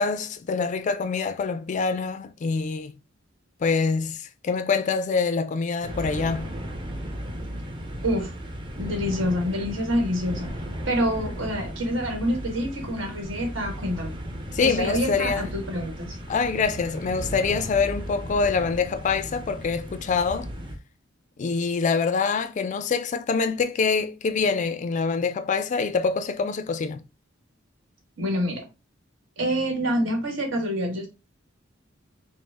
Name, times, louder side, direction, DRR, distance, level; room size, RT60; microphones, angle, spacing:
voice 1, 0.0-3.0 3.6-6.5 14.5-15.5 16.3-20.5 21.4-27.0, left 5 dB, 40° left, 0.3 m, -25 dB
sound 1, 5.8-20.8, equal, 25° right, 0.7 m, -35 dB
voice 2, 8.7-10.5 10.9-14.2 14.6-16.2 28.2-28.7 29.4-31.1, equal, 75° right, 1.4 m, -27 dB
5.1 x 2.0 x 3.3 m
head